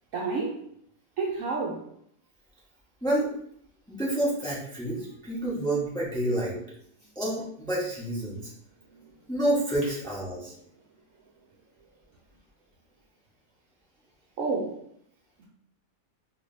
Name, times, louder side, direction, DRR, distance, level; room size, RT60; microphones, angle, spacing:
voice 1, 0.1-0.6 1.2-1.8 8.9-9.1 9.8-9.9 14.4-14.8 15.4-15.5, right 4 dB, 65° right, -3 dB, 0.8 m, -30 dB
voice 2, 3.9-6.6 7.1-8.4 9.3-10.5, right 1 dB, 5° left, -7 dB, 0.9 m, -28 dB
4.7 x 2.9 x 2.7 m, 0.68 s
omnidirectional pair, 1.8 m